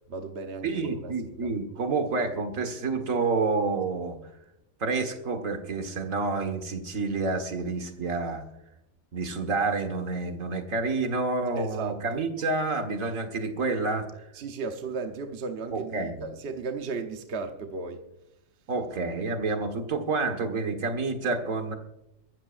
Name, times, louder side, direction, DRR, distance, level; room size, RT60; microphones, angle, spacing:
voice 1, 0.1-1.1 1.4-1.5 11.5-12.2 14.3-18.1, right 4 dB, 50° right, 5 dB, 1.2 m, -35 dB
voice 2, 0.6-4.2 4.8-8.4 9.1-14.3 15.7-16.2 18.7-21.8, right 3 dB, 70° right, 5 dB, 2.0 m, -29 dB
23.5 x 13.0 x 2.6 m, 0.87 s
omnidirectional pair, 1.4 m